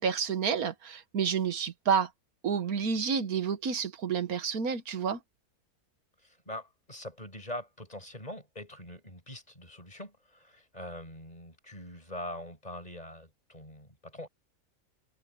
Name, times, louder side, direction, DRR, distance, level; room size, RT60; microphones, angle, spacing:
voice 1, 0.0-2.1 2.4-5.2, right 6 dB, 85° right, 1.8 m, -29 dB
voice 2, 6.2-14.3, left 1 dB, 25° left, 7.0 m, -43 dB
open air
omnidirectional pair, 1.5 m